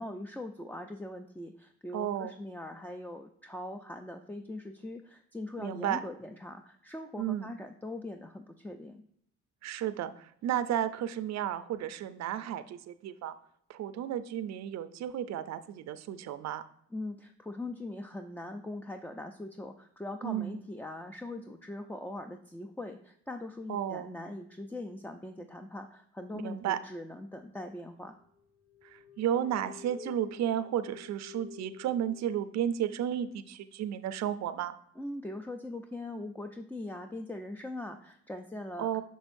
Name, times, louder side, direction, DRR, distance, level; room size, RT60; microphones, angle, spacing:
voice 1, 0.0-9.0 16.9-28.2 35.0-39.0, left 1 dB, 5° left, 5 dB, 0.4 m, -41 dB
voice 2, 1.9-2.3 5.6-6.0 7.2-7.5 9.6-13.4 13.7-16.6 20.2-20.6 23.7-24.1 26.4-26.8 28.8-34.7 38.8-39.0, right 10 dB, 60° right, 11 dB, 0.5 m, -33 dB
sound 1, 28.4-32.4, left 6 dB, 45° left, 1.4 m, -50 dB
6.3 x 6.1 x 2.6 m, 0.68 s
cardioid pair, 90°, 30 cm